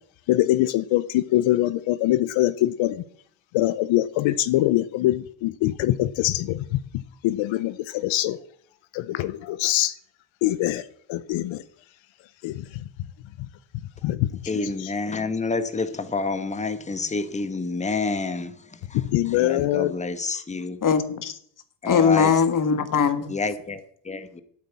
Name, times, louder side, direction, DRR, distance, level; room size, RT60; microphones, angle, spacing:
voice 1, 0.3-3.0 3.5-6.8 7.2-8.4 8.9-9.9 10.4-10.8 11.1-11.6 12.4-12.6 14.0-14.9 18.9-19.9, left 15 dB, 85° left, 0.8 m, -23 dB
voice 2, 14.5-18.5 18.9-19.0 19.3-20.8 21.8-22.3 23.3-24.4, left 3 dB, 15° left, 1.3 m, -28 dB
voice 3, 20.8-21.4 21.9-23.3, left 6 dB, 45° left, 1.7 m, -20 dB
9.6 x 8.5 x 8.4 m
cardioid pair, 100°, 45 cm